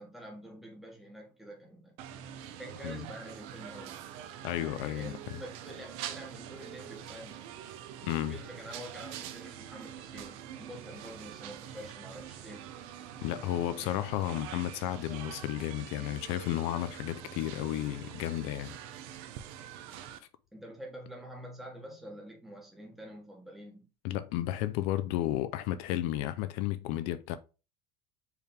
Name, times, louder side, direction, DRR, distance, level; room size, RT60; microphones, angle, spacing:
voice 1, 0.0-2.0 2.2-4.0 4.5-7.5 8.3-12.7 20.5-23.9, equal, ahead, 1.2 m, -47 dB
sound 1, 2.0-20.2, right 10 dB, 55° right, 0.6 m, -45 dB
voice 2, 4.4-5.4 8.0-8.4 13.2-18.8 24.0-27.4, left 13 dB, 55° left, 0.4 m, -33 dB
4.6 x 3.4 x 3.4 m
cardioid pair, 170°, 13 cm